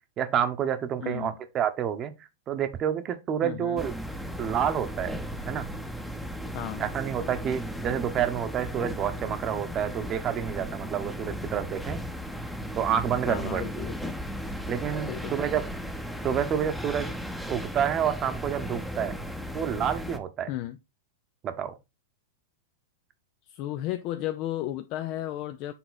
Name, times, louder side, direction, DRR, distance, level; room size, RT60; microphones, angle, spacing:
voice 1, 0.2-2.1 2.5-3.9 4.4-5.7 6.8-12.0 12.8-13.9 14.7-15.6 16.2-17.2 17.5-19.2 19.5-20.5 21.4-21.7, right 9 dB, 30° right, 1.0 m, -29 dB
voice 2, 1.0-1.4 3.4-3.8 6.5-6.8 13.2-14.2 15.0-15.3 20.5-20.8 23.5-25.7, left 14 dB, 45° left, 0.6 m, -34 dB
sound 1, 3.8-20.2, equal, ahead, 0.9 m, -36 dB
7.1 x 3.7 x 4.0 m
hypercardioid pair, 125°, 0 cm